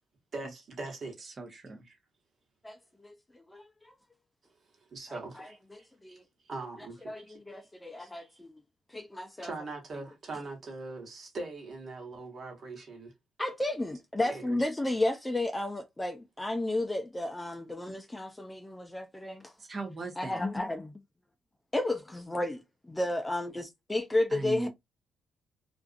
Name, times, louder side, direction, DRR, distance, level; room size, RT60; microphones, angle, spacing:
voice 1, 0.3-1.2 1.9-2.0 4.9-5.6 6.1-6.2 6.5-7.0 7.3-7.4 8.0-8.4 9.4-13.1 14.3-14.6, right 3 dB, 50° right, 1.3 m, -41 dB
voice 2, 1.2-1.8 19.6-20.4 24.3-24.7, right 3 dB, 30° right, 0.8 m, -39 dB
voice 3, 2.6-3.9 5.1-6.2 7.1-8.5 8.9-9.5 13.4-19.5 20.2-20.9 21.7-24.7, left 1 dB, 15° left, 0.4 m, -33 dB
2.5 x 2.3 x 2.4 m
cardioid pair, 90°, 0 cm